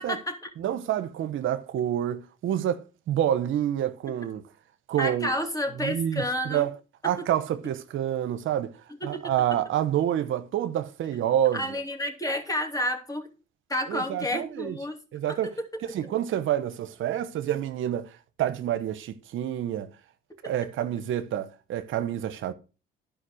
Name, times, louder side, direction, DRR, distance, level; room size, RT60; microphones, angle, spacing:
voice 1, 0.0-0.5 5.0-6.7 7.0-7.3 9.0-9.3 11.5-13.3 13.7-15.0 15.3-15.7 20.4-20.5, left 1 dB, 15° left, 2.9 m, -30 dB
voice 2, 0.6-4.4 4.9-5.3 5.8-6.7 7.0-8.7 9.0-11.6 13.9-14.8 15.1-15.5 15.9-18.1 18.4-19.9 20.4-22.5, right 11 dB, 70° right, 0.8 m, -28 dB
11.5 x 5.1 x 6.3 m
supercardioid pair, 65°, 21 cm